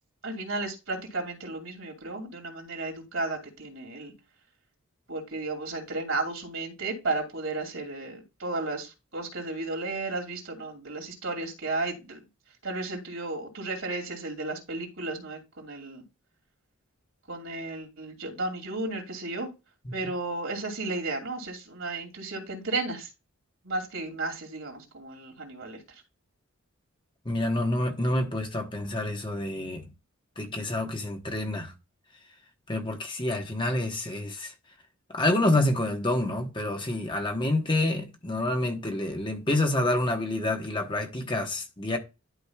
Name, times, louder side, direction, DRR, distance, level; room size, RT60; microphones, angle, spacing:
voice 1, 0.2-4.1 5.1-12.2 12.6-16.0 17.3-19.5 19.9-23.1 23.6-25.8, right 2 dB, 60° right, 2.5 m, -33 dB
voice 2, 27.2-29.9 30.4-31.7 32.7-34.5 35.1-42.0, left 1 dB, 20° left, 1.2 m, -28 dB
11.5 x 5.1 x 2.3 m
head